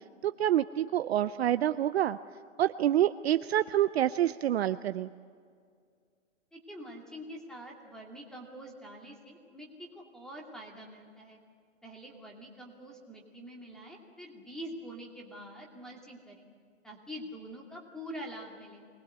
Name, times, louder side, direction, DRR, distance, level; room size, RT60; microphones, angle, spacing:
voice 1, 0.2-2.2 2.6-5.1, right 12 dB, 55° right, 12 dB, 0.6 m, -27 dB
voice 2, 6.5-11.4 11.8-16.4 16.8-18.8, equal, ahead, 0 dB, 2.5 m, -45 dB
24.5 x 19.5 x 8.0 m, 2.1 s
hypercardioid pair, 150°, 38 cm